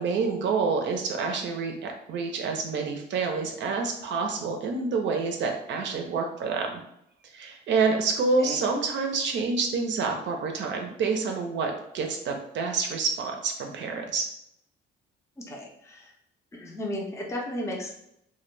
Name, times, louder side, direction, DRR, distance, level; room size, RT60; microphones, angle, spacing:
voice 1, 0.0-6.8 7.3-14.3, right 4 dB, 65° right, 3 dB, 0.5 m, -28 dB
voice 2, 15.4-16.1 16.5-17.9, left 1 dB, 15° left, -2 dB, 0.5 m, -34 dB
2.1 x 2.1 x 3.1 m, 0.77 s
cardioid pair, 90°, 20 cm